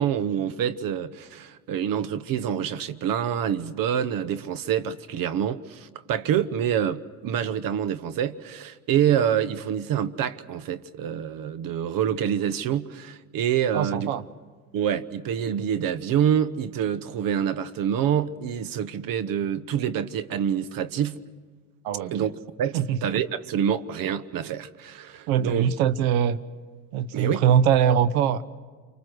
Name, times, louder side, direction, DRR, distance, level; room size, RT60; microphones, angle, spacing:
voice 1, 0.0-14.2 14.7-21.2 22.1-22.3 22.6-25.7 27.1-27.4, right 9 dB, 55° right, 1.1 m, -26 dB
voice 2, 13.7-14.2 21.8-22.1 22.7-23.0 25.3-26.4 26.9-28.4, right 9 dB, 80° right, 1.0 m, -22 dB
28.5 x 24.5 x 6.3 m
supercardioid pair, 85°, 42 cm